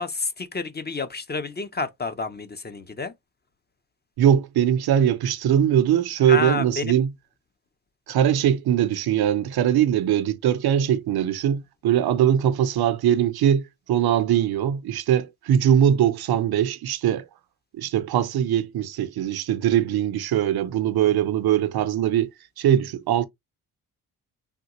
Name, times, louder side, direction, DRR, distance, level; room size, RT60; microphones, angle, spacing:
voice 1, 0.0-3.1 6.3-7.0, left 4 dB, 25° left, 0.6 m, -29 dB
voice 2, 4.2-7.1 8.1-17.2 17.7-22.3 22.6-23.3, right 10 dB, 70° right, 0.6 m, -21 dB
3.5 x 2.3 x 2.9 m
cardioid pair, 65°, 39 cm